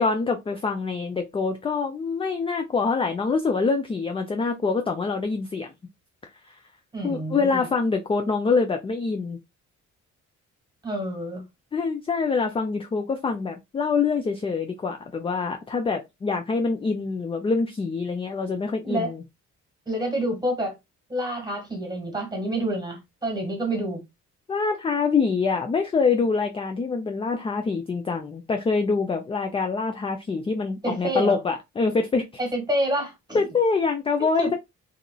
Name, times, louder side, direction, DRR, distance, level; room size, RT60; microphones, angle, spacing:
voice 1, 0.0-5.7 7.0-9.4 11.7-19.2 24.5-32.3 33.3-34.6, left 4 dB, 20° left, 0.3 m, -25 dB
voice 2, 6.9-7.7 10.8-11.4 18.8-19.1 19.8-20.7 21.1-24.0 30.8-31.4 32.4-33.4 34.2-34.5, right 1 dB, 15° right, 1.5 m, -28 dB
3.0 x 2.4 x 2.2 m
cardioid pair, 90°, 30 cm